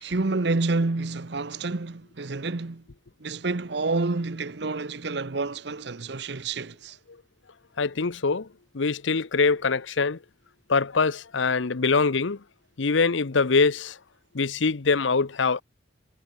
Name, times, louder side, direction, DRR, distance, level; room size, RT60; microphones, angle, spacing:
voice 1, 0.0-2.8 3.2-7.0, right 3 dB, 60° right, 0.9 m, -28 dB
voice 2, 7.8-8.5 8.7-10.2 10.7-12.4 12.8-14.0 14.3-15.6, left 4 dB, 75° left, 0.8 m, -23 dB
head